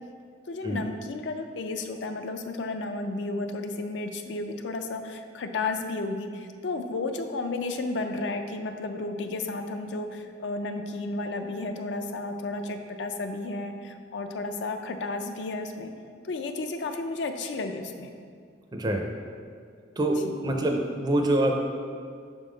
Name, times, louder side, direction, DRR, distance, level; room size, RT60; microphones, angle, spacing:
voice 1, 0.5-15.9 16.2-18.1 20.2-20.3, left 3 dB, 70° left, 6 dB, 0.5 m, -33 dB
voice 2, 18.7-19.1 20.0-21.6, right 1 dB, 25° right, 2 dB, 0.4 m, -25 dB
5.5 x 3.6 x 5.0 m, 2.2 s
head